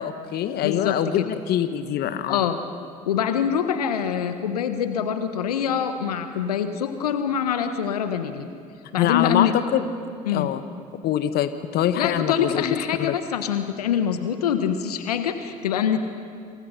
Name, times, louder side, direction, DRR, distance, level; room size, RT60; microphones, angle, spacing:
voice 1, 0.0-2.4 9.0-9.8 10.3-10.6 11.0-13.2, left 10 dB, 55° left, 11 dB, 1.4 m, -24 dB
voice 2, 0.6-1.2 2.3-2.6 3.1-8.5 8.9-9.5 10.3-10.5 12.0-16.1, left 8 dB, 80° left, 9 dB, 1.3 m, -25 dB
28.0 x 28.0 x 5.8 m, 2.3 s
hypercardioid pair, 60°, 20 cm